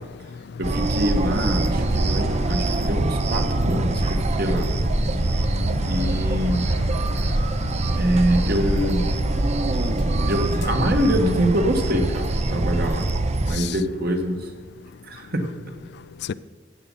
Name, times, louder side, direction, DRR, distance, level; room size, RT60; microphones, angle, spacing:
sound 1, 0.6-13.6, right 2 dB, 35° right, 0.7 m, -23 dB
voice 1, 0.6-4.7 5.2-5.4 5.9-6.7 7.8-9.1 10.2-13.1 13.4-14.5 15.0-15.4, equal, 50° right, 1.7 m, -25 dB
voice 2, 2.5-2.9 3.6-4.0 5.1-5.2 5.4-7.4 13.5-13.8 16.3-16.4, left 6 dB, 60° left, 0.4 m, -35 dB
14.0 x 8.5 x 5.6 m
head